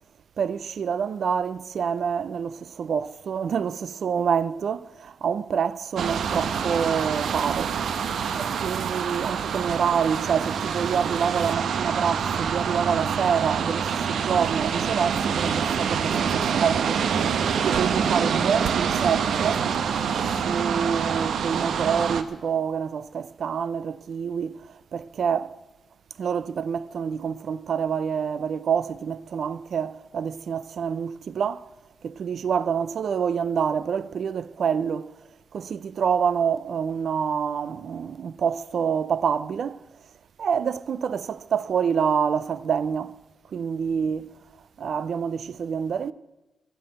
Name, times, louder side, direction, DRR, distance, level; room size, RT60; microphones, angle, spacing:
voice 1, 0.4-7.8 8.4-17.0 17.5-19.7 20.4-25.5 26.2-31.7 32.0-35.2 35.5-39.8 40.4-43.2 43.5-44.3 44.8-46.1, right 7 dB, 65° right, 0.5 m, -27 dB
sound 1, 6.0-22.2, right 7 dB, 85° right, 0.8 m, -26 dB
13.5 x 10.5 x 7.7 m
wide cardioid pair, 145°, 0 cm